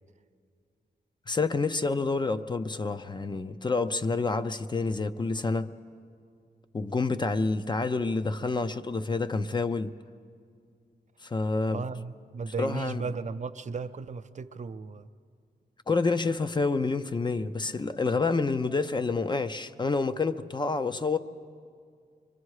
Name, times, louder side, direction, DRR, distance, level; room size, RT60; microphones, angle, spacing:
voice 1, 1.3-5.7 6.7-9.9 11.2-11.9 12.6-13.0 15.9-21.2, left 3 dB, 25° left, 10 dB, 0.5 m, -28 dB
voice 2, 11.7-15.1, right 5 dB, 45° right, 11 dB, 0.5 m, -35 dB
25.0 x 23.0 x 4.8 m, 2.3 s
wide cardioid pair, 130°, 17 cm